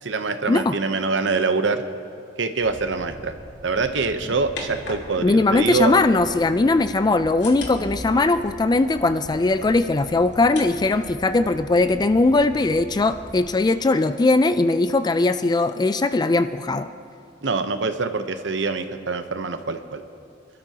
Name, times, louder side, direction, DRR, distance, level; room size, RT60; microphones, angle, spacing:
voice 1, 0.0-1.8 2.4-3.3 3.6-6.0 17.4-20.0, right 4 dB, 85° right, 8 dB, 0.8 m, -24 dB
sound 1, 2.6-13.4, equal, 55° right, 2.1 m, -43 dB
sound 2, 4.0-6.1 6.9-16.0, left 2 dB, 70° left, 2.3 m, -43 dB
voice 2, 5.2-16.9, left 2 dB, 25° left, 11 dB, 0.3 m, -20 dB
27.0 x 12.5 x 2.9 m, 2.4 s
head